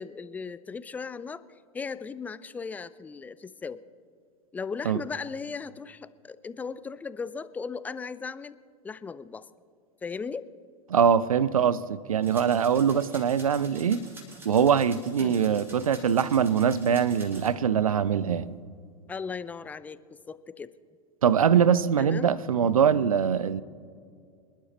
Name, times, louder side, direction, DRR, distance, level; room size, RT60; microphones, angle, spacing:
voice 1, 0.0-1.4 1.7-3.8 4.5-8.6 8.8-9.5 10.0-10.4 15.2-15.4 19.1-20.7 22.0-22.3 22.9-23.1, left 5 dB, 10° left, 0.4 m, -37 dB
voice 2, 10.9-14.0 14.4-18.5 21.2-23.6, right 7 dB, 75° right, 0.6 m, -23 dB
sound 1, 12.2-17.5, right 1 dB, 15° right, 2.9 m, -48 dB
26.5 x 12.0 x 3.0 m
figure-of-eight pair, 90°, 18 cm